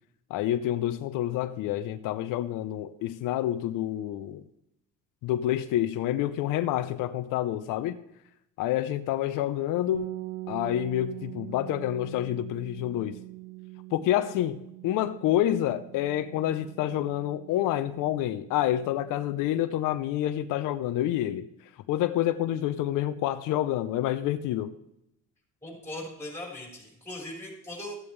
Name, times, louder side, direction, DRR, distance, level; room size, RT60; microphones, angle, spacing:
voice 1, 0.3-4.4 5.2-8.0 8.6-10.1 10.5-13.2 13.9-14.6 14.8-21.5 21.9-24.7, left 12 dB, 90° left, 0.7 m, -28 dB
sound 1, 9.9-19.7, right 19 dB, 90° right, 1.3 m, -43 dB
voice 2, 25.6-28.0, left 1 dB, 10° left, 4.4 m, -39 dB
14.5 x 8.7 x 3.3 m
cardioid pair, 140°, 31 cm